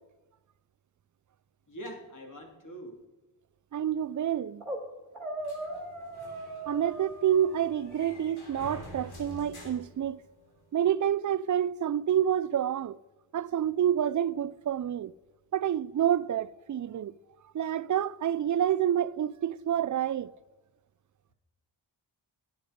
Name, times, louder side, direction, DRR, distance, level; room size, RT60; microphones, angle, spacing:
voice 1, 1.7-3.0, equal, 40° left, 3.0 m, -43 dB
voice 2, 3.7-4.6 6.7-10.2 10.7-13.0 13.3-15.1 15.5-17.1 17.5-20.3, right 10 dB, 40° right, 0.4 m, -28 dB
sound 1, 4.6-4.8 5.1-7.9, right 1 dB, ahead, 3.3 m, -39 dB
sound 2, 5.4-10.7, left 1 dB, 85° left, 3.2 m, -48 dB
11.0 x 9.4 x 5.2 m
cardioid pair, 60°, 48 cm